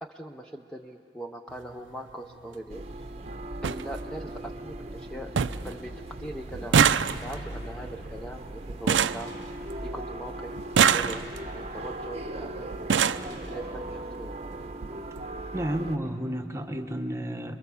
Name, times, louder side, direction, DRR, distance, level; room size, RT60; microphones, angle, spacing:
voice 1, 0.0-2.8 3.6-5.3 5.6-6.8 7.2-9.3 9.8-12.7 13.3-14.4, right 1 dB, 5° left, 3 dB, 0.5 m, -41 dB
sound 1, 1.5-1.7 2.9-3.0 3.3-3.4 3.6-3.8 4.3-4.8 5.0-5.1 5.4-5.7 6.0-10.0 10.6-11.5 12.3-12.4 12.7-13.3 14.3-14.4 14.7-14.9 15.2-15.3, right 7 dB, 90° right, 0.5 m, -25 dB
sound 2, 2.7-16.0, right 1 dB, 35° right, 0.8 m, -39 dB
voice 2, 15.5-17.6, equal, 15° right, 6 dB, 1.1 m, -31 dB
29.5 x 22.0 x 7.0 m, 2.8 s
head